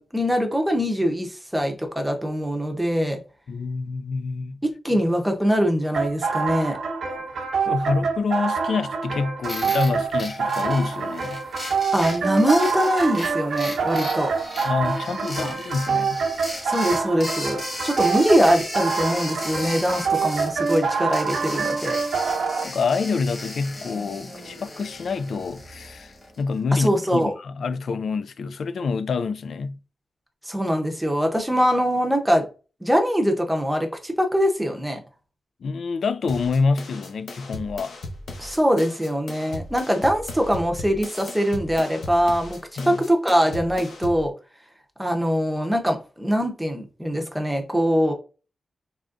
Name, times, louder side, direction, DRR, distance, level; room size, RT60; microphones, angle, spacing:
voice 1, 0.0-3.2 4.6-6.8 11.9-14.3 15.4-15.6 16.6-22.0 26.7-27.3 30.4-32.4 32.8-35.0 38.4-42.6 42.9-44.3 45.0-48.1, equal, 5° right, 0.7 m, -22 dB
voice 2, 3.5-4.6 7.3-11.4 14.6-16.2 22.6-29.8 35.6-37.9 42.8-43.0, left 4 dB, 65° left, 0.3 m, -27 dB
Pony Ride, 5.9-22.6, right 5 dB, 90° right, 0.8 m, -26 dB
sound 1, 9.4-26.4, left 1 dB, 25° left, 1.4 m, -36 dB
sound 2, 36.3-44.3, left 2 dB, 85° left, 0.9 m, -37 dB
3.8 x 3.3 x 2.4 m
wide cardioid pair, 180°, 0 cm